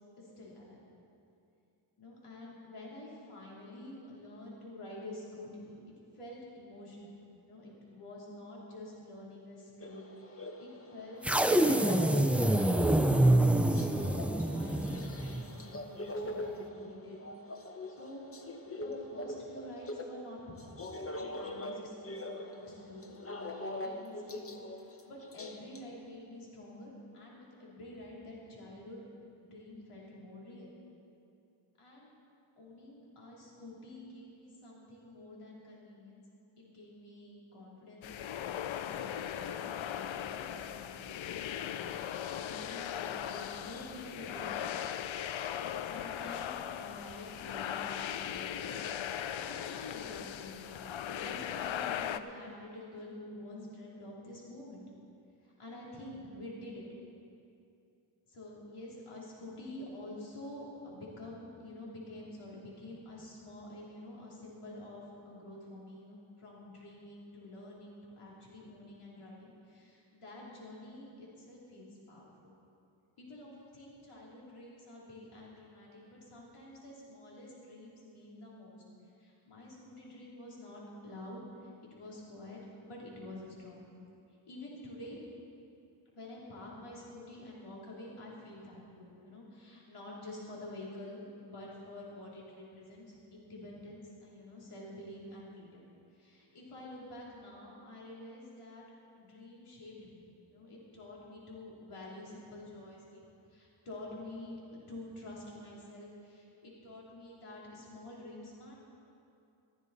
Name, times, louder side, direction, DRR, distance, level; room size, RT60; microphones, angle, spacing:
voice 1, 0.2-0.8 2.0-5.8 6.1-13.5 14.1-17.2 17.9-18.3 18.7-20.8 21.1-24.4 24.8-29.0 29.3-30.7 31.8-32.1 32.6-36.2 36.6-38.1 38.3-44.5 45.6-54.9 55.4-56.9 58.3-72.5 73.2-78.8 79.2-83.9 84.5-85.2 86.1-95.9 96.1-98.9 99.2-103.2 103.5-108.7, left 1 dB, 85° left, -5 dB, 3.3 m, -48 dB
sound 1, 9.8-20.2 20.6-25.9, left 1 dB, 25° left, 1.0 m, -43 dB
sound 2, 11.2-15.5, right 1 dB, 5° right, 0.4 m, -26 dB
sound 3, 38.0-52.2, left 10 dB, 70° left, 0.6 m, -38 dB
15.5 x 13.5 x 4.1 m, 2.7 s
wide cardioid pair, 95°, 49 cm